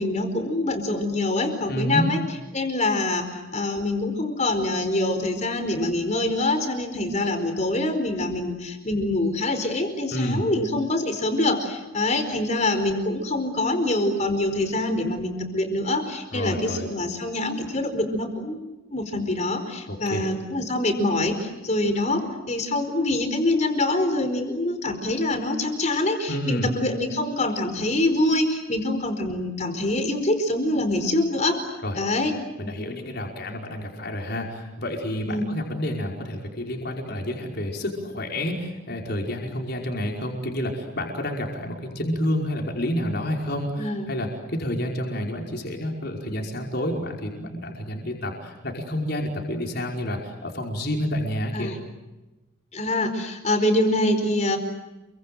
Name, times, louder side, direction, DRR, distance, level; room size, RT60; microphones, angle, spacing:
voice 1, 0.0-2.2 2.5-32.3 35.3-35.5 43.8-44.1 51.5-51.8 52.7-54.6, left 2 dB, 35° left, 7 dB, 4.8 m, -25 dB
voice 2, 1.7-2.1 10.1-10.5 16.3-16.9 19.9-20.2 26.3-26.7 31.8-32.0 32.6-51.7, equal, 50° left, 1 dB, 5.2 m, -29 dB
30.0 x 24.5 x 7.9 m, 1.1 s
head